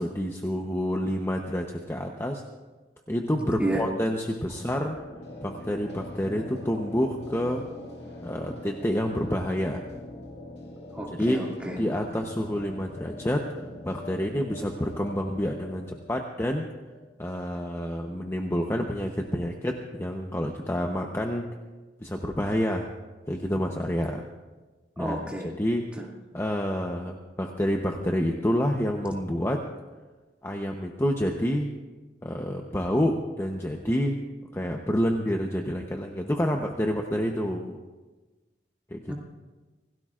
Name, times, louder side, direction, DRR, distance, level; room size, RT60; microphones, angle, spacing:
voice 1, 0.0-2.4 3.1-5.0 5.4-7.6 8.2-9.8 11.2-11.4 11.8-13.5 13.8-16.6 17.2-21.5 22.0-22.9 23.3-24.2 25.0-25.2 25.6-25.8 26.3-29.6 30.4-31.7 32.2-34.2 34.5-37.8 38.9-39.1, equal, 15° left, 2 dB, 0.8 m, -28 dB
sound 1, 4.6-18.2, left 1 dB, 70° left, 2.2 m, -43 dB
voice 2, 10.9-11.8 25.0-25.5 26.0-26.1 39.1-39.2, right 1 dB, 5° right, -2 dB, 2.3 m, -31 dB
26.5 x 17.0 x 2.5 m, 1.3 s
head